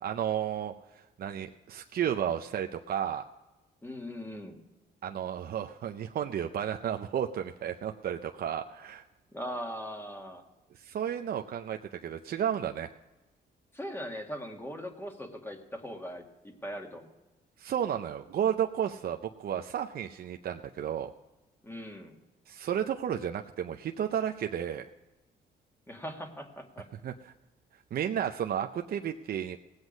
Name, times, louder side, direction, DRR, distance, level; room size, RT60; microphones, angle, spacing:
voice 1, 0.0-3.2 5.0-9.0 10.7-12.9 17.6-21.1 22.5-24.9 27.0-27.3 27.9-29.6, right 9 dB, 60° right, 5 dB, 0.6 m, -32 dB
voice 2, 3.8-4.6 9.3-10.4 13.7-17.1 21.6-22.2 25.9-26.9, equal, 15° left, 2 dB, 2.0 m, -40 dB
18.0 x 8.1 x 5.3 m, 1.1 s
cardioid pair, 90°, 18 cm